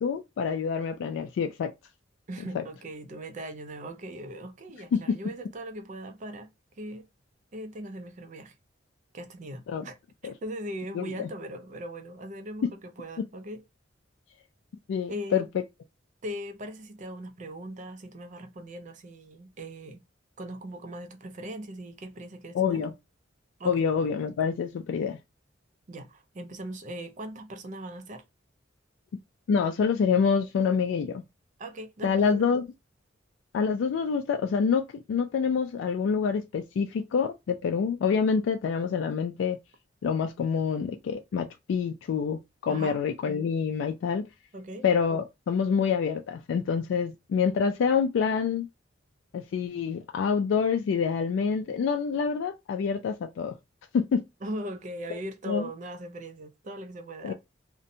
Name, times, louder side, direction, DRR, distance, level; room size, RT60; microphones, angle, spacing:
voice 1, 0.0-1.7 2.5-2.6 4.9-5.0 9.7-9.8 10.2-10.3 10.9-11.3 14.9-15.5 22.5-22.9 23.7-25.2 29.5-31.2 32.0-32.6 33.5-34.8 35.1-39.6 40.0-44.2 44.8-48.7 49.3-53.5 53.9-54.2 55.5-55.7 57.2-57.3, left 6 dB, 90° left, 0.3 m, -26 dB
voice 2, 2.3-6.5 6.8-7.1 7.5-8.5 9.1-10.0 10.2-13.6 15.1-15.4 16.2-20.0 20.4-22.8 23.6-23.8 25.9-28.2 31.6-32.5 42.7-43.0 44.5-44.8 54.4-57.3, right 1 dB, 40° right, 0.4 m, -39 dB
2.6 x 2.1 x 2.6 m
head